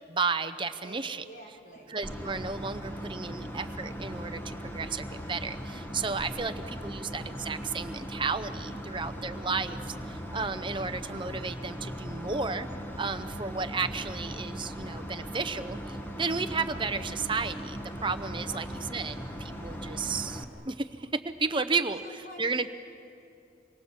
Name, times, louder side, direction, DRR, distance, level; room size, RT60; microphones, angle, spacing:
voice 1, 0.1-1.2 1.9-12.7 13.0-18.7 18.9-22.7, right 4 dB, 25° right, 10 dB, 0.8 m, -33 dB
voice 2, 0.8-2.0 18.5-19.3 21.8-22.7, equal, 45° left, -1 dB, 4.4 m, -49 dB
sound 1, 2.0-20.4, equal, 10° left, 1.5 m, -39 dB
26.5 x 23.0 x 7.4 m, 2.7 s
head